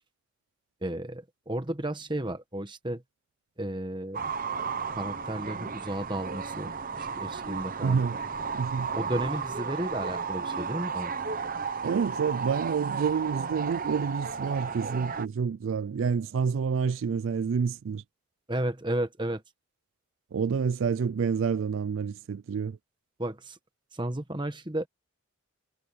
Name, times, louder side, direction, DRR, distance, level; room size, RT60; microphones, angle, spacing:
voice 1, 0.8-3.0 3.6-4.2 5.0-8.0 8.9-11.1 18.5-19.4 23.2-23.6 23.9-24.9, right 1 dB, 20° right, 1.3 m, -33 dB
sound 1, 4.1-15.3, right 5 dB, 40° right, 0.8 m, -34 dB
voice 2, 7.8-8.2 8.5-8.9 11.8-18.0 20.3-22.8, right 6 dB, 60° right, 0.3 m, -28 dB
head